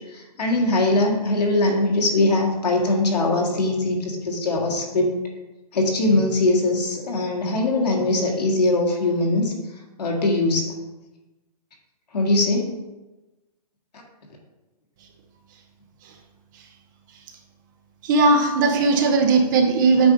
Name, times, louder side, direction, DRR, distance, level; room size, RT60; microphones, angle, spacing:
voice 1, 0.1-5.1 5.7-9.5 10.0-10.7 12.1-12.7, left 2 dB, 85° left, -1 dB, 1.8 m, -21 dB
voice 2, 18.1-20.1, right 3 dB, 30° right, 3 dB, 0.7 m, -17 dB
7.9 x 2.7 x 5.0 m, 1.1 s
hypercardioid pair, 155°, 20 cm